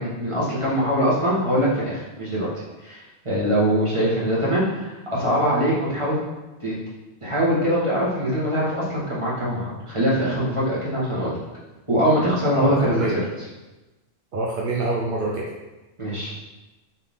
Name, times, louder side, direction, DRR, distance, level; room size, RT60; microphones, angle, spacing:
voice 1, 0.0-2.5 2.8-6.2 6.6-6.7 7.2-11.4 11.9-13.1 16.0-16.4, equal, 25° right, -8 dB, 1.8 m, -23 dB
voice 2, 12.5-13.2 14.3-15.5, right 2 dB, 50° right, -2 dB, 0.8 m, -25 dB
6.6 x 4.0 x 3.7 m, 1.1 s
omnidirectional pair, 1.3 m